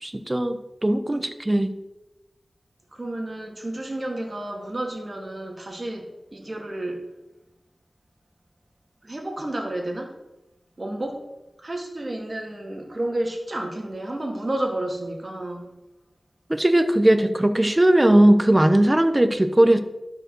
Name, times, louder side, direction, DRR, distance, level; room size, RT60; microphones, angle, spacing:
voice 1, 0.0-1.7 16.5-19.8, right 1 dB, 20° right, 9 dB, 0.9 m, -18 dB
voice 2, 2.9-7.0 9.0-10.1 10.8-11.2 11.6-15.7, right 1 dB, 40° right, 2 dB, 2.1 m, -31 dB
12.5 x 5.3 x 6.3 m, 1.0 s
wide cardioid pair, 65°, 0 cm